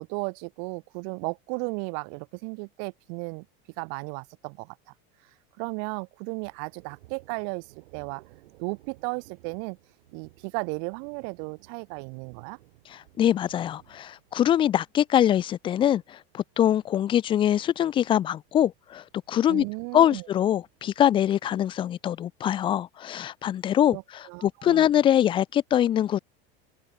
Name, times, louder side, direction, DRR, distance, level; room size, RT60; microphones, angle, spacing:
voice 1, 0.0-3.5 3.8-4.8 5.6-7.7 7.9-8.2 8.6-9.8 10.1-12.6 19.5-20.3 23.9-24.9, right 40 dB or more, 55° right, 2.6 m, -35 dB
Thunder, 6.4-22.0, right 19 dB, 85° right, 7.4 m, -58 dB
voice 2, 12.9-19.6 19.9-26.2, left 11 dB, 15° left, 0.4 m, -23 dB
open air
cardioid pair, 170°, 31 cm